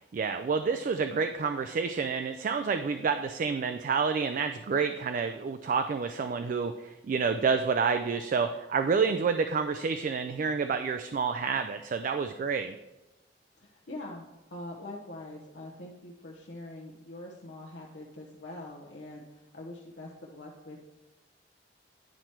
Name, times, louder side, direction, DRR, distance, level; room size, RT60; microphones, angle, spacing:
voice 1, 0.1-12.8, right 5 dB, 50° right, 8 dB, 0.3 m, -29 dB
voice 2, 13.5-14.2 14.5-20.8, left 1 dB, 75° left, -2 dB, 0.8 m, -44 dB
9.8 x 4.4 x 4.5 m, 1.0 s
head